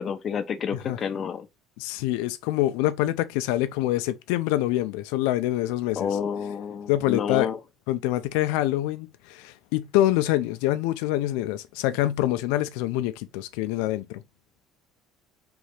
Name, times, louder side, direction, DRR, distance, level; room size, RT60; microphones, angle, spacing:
voice 1, 0.0-1.5 6.0-7.6, left 7 dB, 35° left, 0.6 m, -29 dB
voice 2, 1.8-6.1 6.9-7.5 7.9-14.2, left 15 dB, 90° left, 0.4 m, -25 dB
3.9 x 3.2 x 3.2 m
cardioid pair, 130°, 0 cm